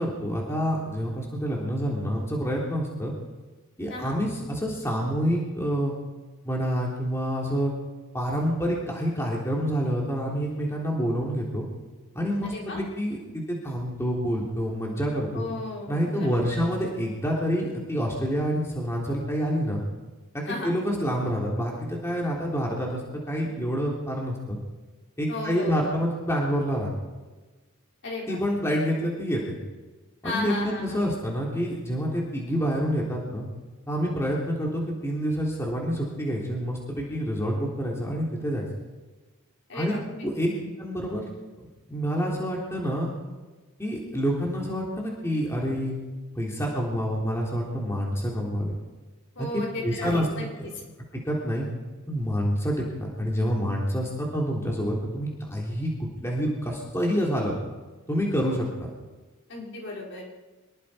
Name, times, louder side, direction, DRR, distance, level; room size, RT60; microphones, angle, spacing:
voice 1, 0.0-3.1 3.8-5.9 6.4-7.7 8.1-11.7 12.2-15.4 15.9-19.8 20.3-24.6 25.2-26.9 28.3-29.6 30.2-33.5 33.9-38.7 39.7-41.3 41.6-43.1 43.8-46.0 46.3-48.7 49.4-50.3 50.6-50.7 51.1-51.7 52.1-55.9 56.2-57.6 58.1-58.9, equal, 10° left, -3 dB, 3.5 m, -27 dB
voice 2, 12.4-12.9 15.3-16.6 20.5-20.8 25.3-26.0 28.0-28.4 30.2-31.0 39.7-40.3 49.4-50.8 59.5-60.3, left 2 dB, 55° left, -3 dB, 5.7 m, -35 dB
24.5 x 21.5 x 5.1 m, 1.2 s
head